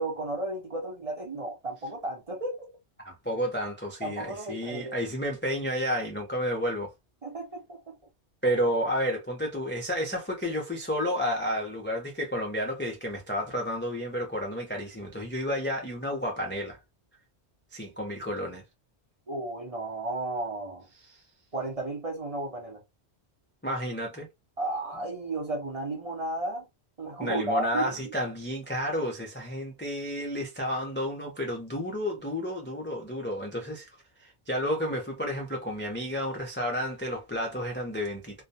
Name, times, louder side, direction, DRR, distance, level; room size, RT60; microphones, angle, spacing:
voice 1, 0.0-2.7 4.0-5.0 7.2-8.0 19.3-20.9 21.5-22.8 24.6-26.7 27.0-28.1, right 2 dB, 35° right, 0.7 m, -33 dB
voice 2, 3.0-6.9 8.4-16.8 17.7-18.6 21.1-21.2 23.6-24.3 27.2-33.9 34.2-38.4, equal, 20° left, 0.3 m, -31 dB
2.3 x 2.2 x 2.6 m
omnidirectional pair, 1.2 m